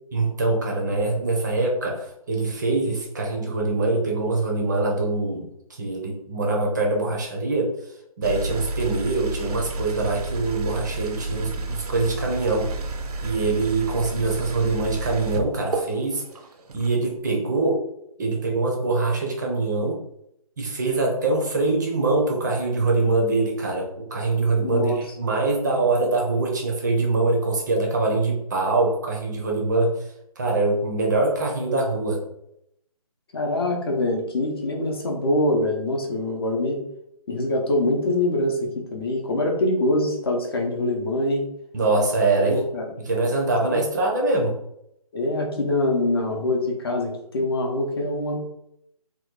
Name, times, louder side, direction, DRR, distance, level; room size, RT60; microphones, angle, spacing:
voice 1, 0.1-5.5 5.8-7.7 8.2-12.8 13.2-16.2 16.7-17.8 18.2-20.0 20.6-29.9 30.4-32.2 41.7-42.6 43.1-44.5, right 3 dB, 30° right, 0 dB, 0.5 m, -23 dB
sound 1, 8.2-16.9, right 2 dB, 85° right, 0.6 m, -31 dB
voice 2, 24.6-25.0 33.3-36.8 37.3-41.4 42.4-42.8 43.6-43.8 45.1-48.4, left 1 dB, 40° left, 1 dB, 0.7 m, -24 dB
2.9 x 2.2 x 3.5 m, 0.78 s
figure-of-eight pair, 160°, 19 cm